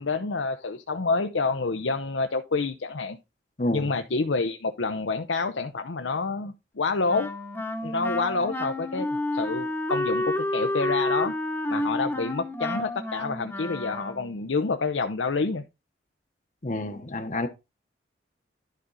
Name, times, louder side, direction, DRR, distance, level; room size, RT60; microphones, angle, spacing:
voice 1, 0.0-3.2 3.7-7.3 7.8-11.3 11.7-15.6, left 4 dB, 90° left, 0.7 m, -28 dB
voice 2, 3.6-3.9 16.6-17.5, left 1 dB, 40° left, 0.9 m, -29 dB
Wind instrument woodwind instrument, 7.1-14.4, left 1 dB, 10° left, 1.0 m, -30 dB
11.5 x 5.1 x 4.0 m
head